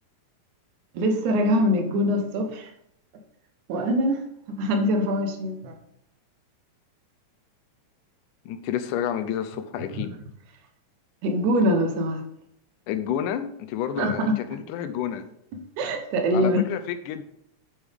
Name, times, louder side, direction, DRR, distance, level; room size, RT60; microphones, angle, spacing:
voice 1, 0.9-2.7 3.7-4.2 4.5-5.8 9.9-10.0 11.2-12.2 14.0-14.3 15.8-16.6, equal, 75° right, 4 dB, 2.6 m, -23 dB
voice 2, 8.5-10.2 12.9-15.3 16.3-17.2, left 9 dB, 85° left, 10 dB, 2.3 m, -30 dB
9.6 x 7.2 x 3.6 m, 0.74 s
omnidirectional pair, 3.6 m